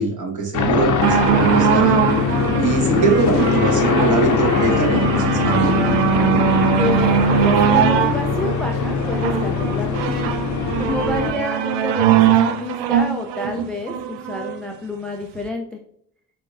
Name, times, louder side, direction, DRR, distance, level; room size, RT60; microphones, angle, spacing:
voice 1, 0.0-2.0 2.6-5.8, right 3 dB, 40° right, 1 dB, 1.3 m, -22 dB
sound 1, 0.5-11.3, left 6 dB, 40° left, 0.7 m, -21 dB
sound 2, 1.0-14.6 15.3-15.4, right 9 dB, 60° right, 0.6 m, -20 dB
voice 2, 6.8-10.3 10.8-15.7, left 1 dB, ahead, 1 dB, 0.3 m, -28 dB
6.1 x 2.3 x 2.5 m, 0.71 s
hypercardioid pair, 50°, 47 cm